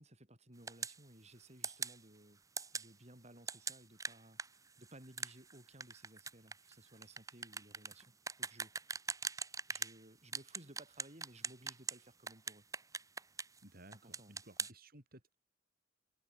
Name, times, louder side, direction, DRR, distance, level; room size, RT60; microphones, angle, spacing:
voice 1, 0.0-2.4 2.7-9.0 9.7-12.6 13.9-14.7, right 1 dB, 35° right, 8.0 m, -59 dB
sound 1, 0.7-1.0 1.6-2.0 2.6-2.9 3.5-10.0 10.3-12.0 12.3-13.6 13.9-14.7, right 5 dB, 20° right, 1.2 m, -41 dB
voice 2, 13.6-15.4, right 1 dB, 50° right, 7.2 m, -58 dB
head